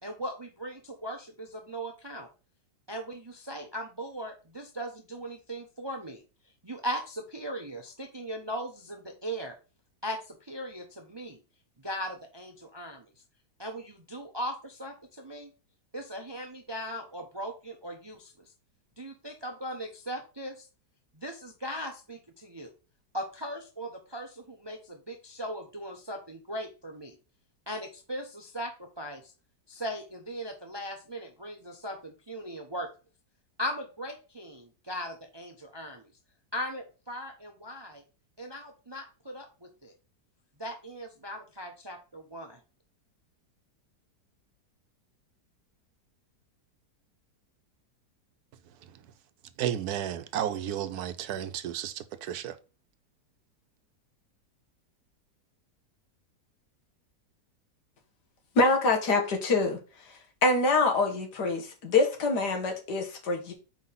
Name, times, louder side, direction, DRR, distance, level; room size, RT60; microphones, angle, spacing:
voice 1, 0.0-2.3 2.9-6.2 6.6-9.6 10.0-11.4 11.8-13.0 13.6-15.5 15.9-18.5 19.0-20.7 21.1-22.7 23.1-27.2 27.7-29.3 29.7-32.9 33.6-36.0 36.5-38.0 38.4-39.9 40.6-42.6, equal, 40° right, 0.3 m, -38 dB
voice 2, 49.6-52.5, right 10 dB, 70° right, 1.1 m, -32 dB
voice 3, 58.6-59.8 60.4-63.5, left 3 dB, 75° left, 1.9 m, -25 dB
4.7 x 3.9 x 5.6 m
omnidirectional pair, 1.8 m